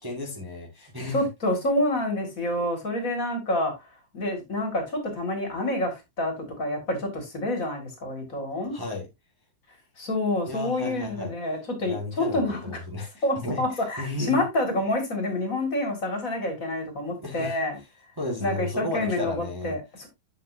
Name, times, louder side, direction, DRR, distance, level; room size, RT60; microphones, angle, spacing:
voice 1, 0.0-1.2 8.7-9.1 10.5-11.3 11.8-13.6 14.0-14.4 17.2-17.6 18.2-19.8, left 2 dB, 15° right, 1.5 m, -33 dB
voice 2, 1.1-3.7 4.1-8.8 10.0-12.6 13.2-17.8 18.4-20.1, left 1 dB, 45° left, 2.4 m, -28 dB
7.9 x 7.0 x 2.6 m
omnidirectional pair, 2.0 m